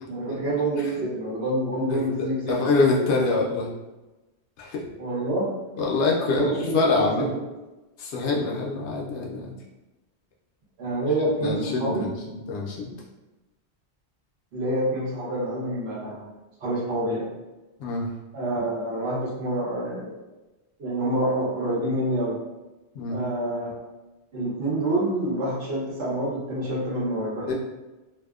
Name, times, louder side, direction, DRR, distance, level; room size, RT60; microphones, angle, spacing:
voice 1, 0.1-2.6 5.0-5.5 6.3-7.4 10.8-12.1 14.5-16.3 16.6-17.3 18.3-20.1 20.8-22.3 23.1-23.8 24.3-27.5, right 1 dB, 70° right, -6 dB, 1.0 m, -27 dB
voice 2, 2.5-3.7 4.6-4.8 5.8-7.3 8.0-9.5 11.4-12.9 17.8-18.1 22.9-23.2 27.5-27.6, left 3 dB, 80° left, -2 dB, 0.9 m, -25 dB
2.7 x 2.0 x 2.3 m, 1.1 s
omnidirectional pair, 1.1 m